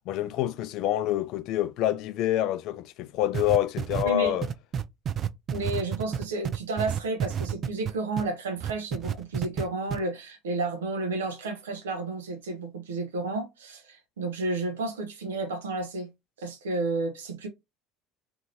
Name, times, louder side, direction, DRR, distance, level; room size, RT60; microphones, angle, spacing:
voice 1, 0.1-4.5, left 13 dB, 60° left, 0.4 m, -27 dB
sound 1, 3.3-8.3 8.6-9.6 9.9-10.0, right 8 dB, 45° right, 0.3 m, -29 dB
voice 2, 4.0-4.4 5.5-16.1 16.4-17.5, right 2 dB, 80° right, 0.7 m, -31 dB
2.8 x 2.7 x 2.5 m
hypercardioid pair, 65°, 0 cm